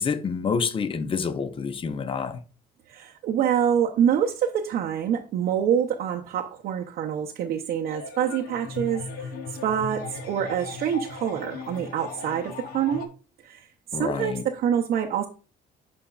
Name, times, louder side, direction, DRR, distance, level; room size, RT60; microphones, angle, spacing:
voice 1, 0.0-2.4 13.9-14.4, left 5 dB, 30° left, 0.7 m, -28 dB
voice 2, 2.9-9.3 9.6-13.1 13.4-13.7 13.9-15.3, right 9 dB, 65° right, 0.7 m, -26 dB
sound 1, 7.9-13.1, left 5 dB, 65° left, 0.9 m, -38 dB
10.5 x 4.3 x 2.4 m
cardioid pair, 110°, 17 cm